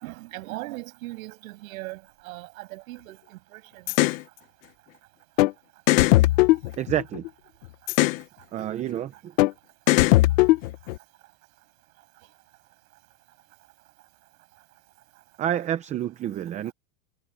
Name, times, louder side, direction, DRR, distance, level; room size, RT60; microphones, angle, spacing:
voice 1, 0.0-3.8, right 19 dB, 60° right, 7.5 m, -39 dB
sound 1, 3.9-4.2 5.4-5.5 5.9-7.3 7.9-8.2 9.4-9.5 9.9-11.0, left 18 dB, 55° left, 1.0 m, -19 dB
voice 2, 6.8-7.3 8.5-9.4 15.4-16.7, right 11 dB, 15° right, 0.6 m, -29 dB
supercardioid pair, 155°, 47 cm